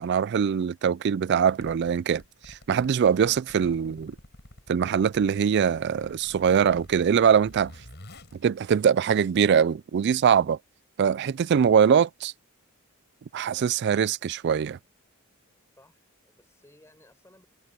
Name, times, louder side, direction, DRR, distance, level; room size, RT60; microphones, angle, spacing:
voice 1, 0.0-4.2 4.7-7.7 8.4-10.6 11.0-12.3 13.3-14.8, right 7 dB, 50° right, 0.3 m, -22 dB
Zipper (clothing), 1.4-9.4, left 1 dB, 50° left, 6.4 m, -50 dB
voice 2, 15.8-17.5, left 1 dB, 10° left, 7.4 m, -58 dB
head